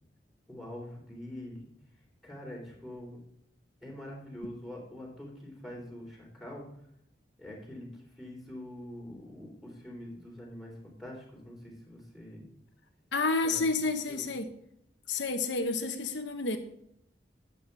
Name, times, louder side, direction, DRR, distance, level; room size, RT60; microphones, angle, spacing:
voice 1, 0.5-1.7 2.2-3.2 3.8-6.7 7.4-12.4 13.4-13.6 14.1-14.3, left 1 dB, ahead, -4 dB, 3.5 m, -44 dB
voice 2, 13.1-14.5 15.1-16.6, left 3 dB, 80° left, 6 dB, 1.0 m, -30 dB
12.0 x 8.4 x 3.4 m, 0.74 s
head